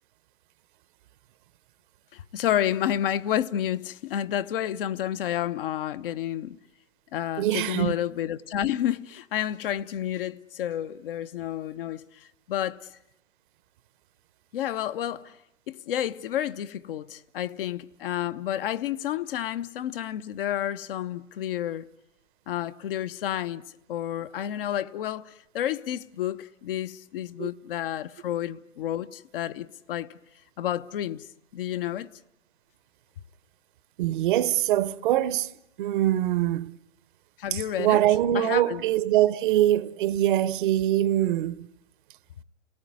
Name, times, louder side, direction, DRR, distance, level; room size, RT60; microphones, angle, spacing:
voice 1, 2.1-6.6 7.1-12.8 14.5-15.4 15.7-21.9 22.5-23.6 23.9-30.1 30.6-31.2 31.5-32.1 37.4-38.0 38.3-38.8, left 11 dB, 50° left, 0.9 m, -30 dB
voice 2, 7.4-8.0 27.4-27.5 34.0-35.5 35.8-36.7 37.5-41.7, right 13 dB, 45° right, 0.9 m, -23 dB
29.0 x 18.5 x 9.6 m
hypercardioid pair, 120°, 37 cm